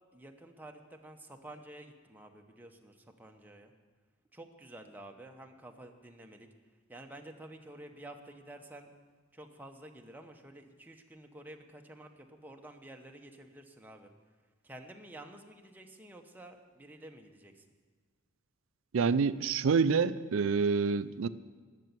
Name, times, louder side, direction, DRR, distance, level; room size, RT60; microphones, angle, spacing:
voice 1, 0.1-3.7 4.3-6.5 6.9-8.9 9.3-14.1 14.6-17.6, right 1 dB, 10° right, 3 dB, 0.9 m, -50 dB
voice 2, 18.9-21.3, right 5 dB, 65° right, 15 dB, 0.4 m, -27 dB
12.0 x 7.0 x 9.5 m, 1.5 s
head